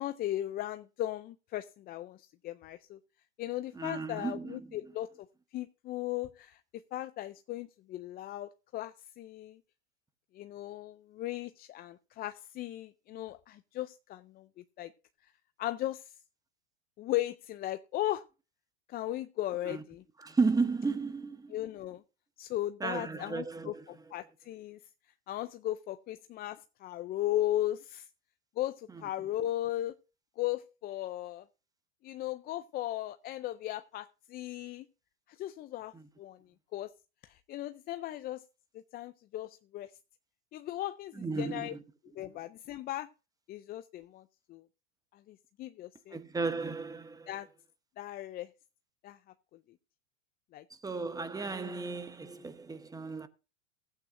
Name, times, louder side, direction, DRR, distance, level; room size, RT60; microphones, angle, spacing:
voice 1, 0.0-3.0 3.4-5.1 5.5-9.6 10.3-14.5 14.8-14.9 15.6-16.1 17.0-18.2 18.9-20.0 21.5-22.0 22.4-24.8 25.3-28.1 28.6-30.0 30.4-31.5 32.0-34.9 35.3-36.4 36.7-36.9 37.2-38.4 38.9-39.9 40.5-41.8 42.1-43.1 43.5-44.2 44.5-44.6 45.1-46.2 47.3-47.5 48.0-48.5 49.0-49.2 50.5-50.6, left 14 dB, 25° left, 0.4 m, -37 dB
voice 2, 3.7-4.7 19.6-19.8 20.2-21.5 22.8-23.8 35.9-36.0 41.2-41.8 46.1-47.3 50.8-53.3, right 4 dB, 10° right, 0.9 m, -34 dB
15.0 x 8.7 x 2.6 m
hypercardioid pair, 110°, 36 cm